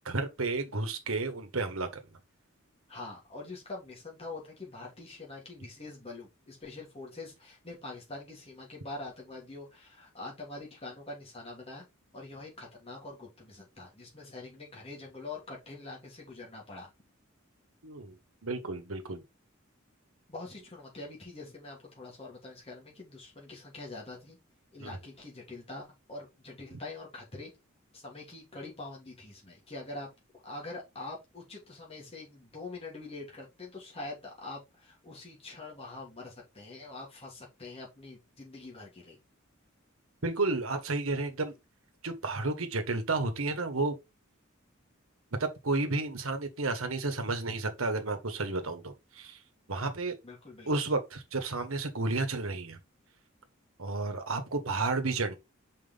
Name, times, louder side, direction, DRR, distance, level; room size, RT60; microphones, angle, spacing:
voice 1, 0.0-1.9 17.8-18.2 18.4-19.2 24.8-25.0 26.7-26.8 40.2-41.6 42.0-44.0 45.4-49.4 49.7-50.2 50.6-52.8 53.8-55.4, right 3 dB, 80° right, 1.5 m, -32 dB
voice 2, 2.9-11.8 12.1-16.9 20.3-24.4 24.7-27.5 27.9-30.1 30.4-39.2 50.2-50.7, left 2 dB, 30° left, 2.9 m, -44 dB
5.4 x 5.0 x 3.9 m
head